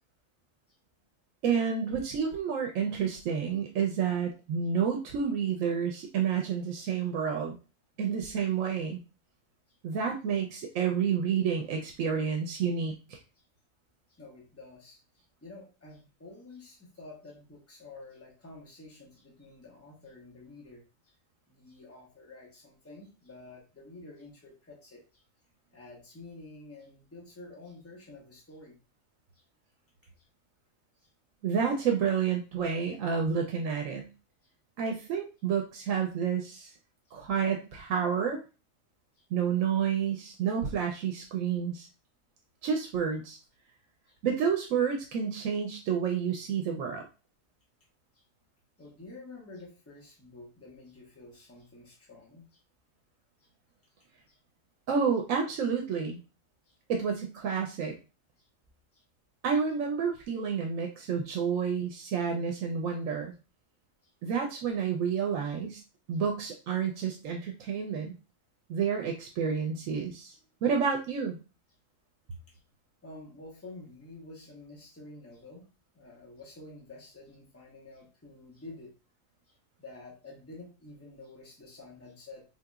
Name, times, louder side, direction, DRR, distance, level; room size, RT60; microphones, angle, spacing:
voice 1, 1.4-7.6 8.0-9.0 9.8-12.9 31.4-34.1 34.8-36.7 37.1-38.4 39.3-41.9 42.6-43.4 44.2-47.0 54.9-56.2 56.9-57.9 59.4-63.3 64.2-65.8 66.1-68.1 68.7-70.4 70.6-71.4, right 7 dB, 80° right, 2 dB, 1.0 m, -29 dB
voice 2, 14.1-15.0 15.4-21.1 21.5-25.2 25.7-28.8 29.3-29.4 30.2-30.3 31.0-31.1 39.2-39.3 44.1-44.2 48.1-48.2 48.8-52.6 53.4-53.5 54.3-54.4 56.7-56.8 58.4-58.5 58.9-59.0 64.0-64.1 72.5-72.6 73.0-75.6 75.9-78.9 79.5-82.4, left 2 dB, 15° left, -2 dB, 0.8 m, -49 dB
4.0 x 2.8 x 2.3 m, 0.31 s
omnidirectional pair, 1.3 m